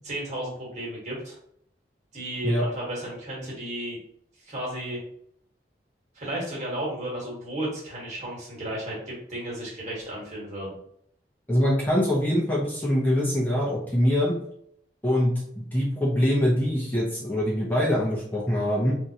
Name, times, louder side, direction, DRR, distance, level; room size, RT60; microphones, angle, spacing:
voice 1, 0.0-1.4 2.1-4.0 4.4-5.0 6.1-10.8, right 1 dB, 40° right, -5 dB, 1.5 m, -33 dB
voice 2, 11.5-14.4 15.0-18.9, equal, 10° left, -6 dB, 0.7 m, -24 dB
3.6 x 2.7 x 2.8 m, 0.70 s
head